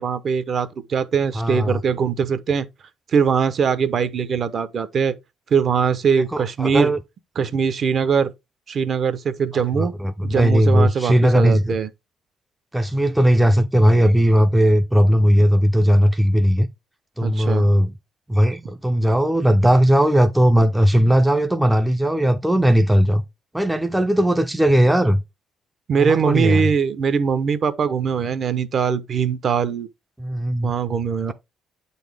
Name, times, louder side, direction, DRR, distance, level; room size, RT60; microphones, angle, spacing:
voice 1, 0.0-2.7 3.1-5.1 5.5-6.9 7.4-8.3 8.7-9.9 10.2-11.9 17.2-17.7 25.9-29.9 30.6-31.3, right 6 dB, 45° right, 0.8 m, -21 dB
voice 2, 1.3-1.8 6.3-7.0 9.5-11.8 12.7-16.7 17.2-17.9 18.3-23.2 23.5-25.2 26.0-26.7 30.2-30.7, equal, 5° right, 0.5 m, -17 dB
8.8 x 4.1 x 3.4 m
cardioid pair, 140°, 0 cm